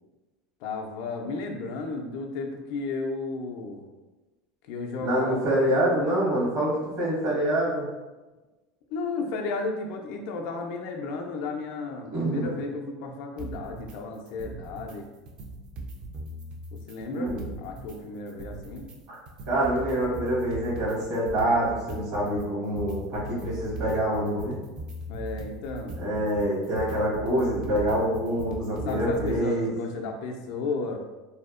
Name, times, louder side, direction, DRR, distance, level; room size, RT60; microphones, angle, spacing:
voice 1, 0.6-3.8 4.7-5.6 8.9-15.1 16.7-18.9 25.1-26.0 28.7-31.0, left 3 dB, 70° left, 2 dB, 0.3 m, -33 dB
voice 2, 5.0-7.9 12.1-12.5 17.1-17.4 19.1-19.2 19.5-24.6 26.0-29.7, right 1 dB, 65° right, -6 dB, 1.3 m, -26 dB
sound 1, 13.4-14.0 14.3-15.0 15.3-18.0 18.3-29.4, right 1 dB, 40° right, 0.4 m, -39 dB
2.6 x 2.0 x 2.4 m, 1.2 s
supercardioid pair, 115°, 2 cm